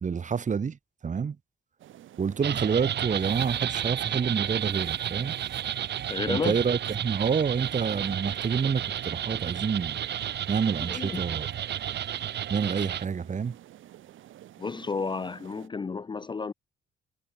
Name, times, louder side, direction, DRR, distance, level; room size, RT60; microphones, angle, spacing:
voice 1, 0.0-0.8 1.0-1.4 2.2-5.4 6.3-10.0 10.5-11.5 12.5-13.6, right 6 dB, 40° right, 1.7 m, -28 dB
sound 1, 1.8-15.7, right 13 dB, 80° right, 7.8 m, -50 dB
sound 2, 2.4-13.0, right 10 dB, 60° right, 1.1 m, -32 dB
voice 2, 6.1-6.6 10.8-11.2 14.6-16.5, left 4 dB, 25° left, 0.5 m, -32 dB
cardioid pair, 90°, 20 cm